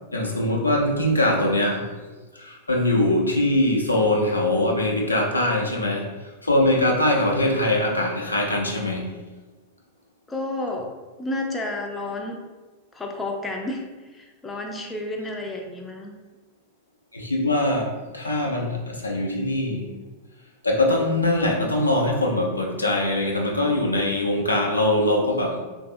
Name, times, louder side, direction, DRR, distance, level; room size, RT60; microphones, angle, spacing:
voice 1, 0.1-1.9 2.3-9.1 17.1-19.9 20.6-25.6, left 1 dB, 80° left, -1 dB, 0.5 m, -22 dB
voice 2, 10.3-10.9 11.2-12.4 12.9-13.8 14.1-16.2, left 2 dB, 10° left, 1 dB, 0.4 m, -31 dB
3.3 x 2.6 x 2.5 m, 1.2 s
figure-of-eight pair, 90°, 0 cm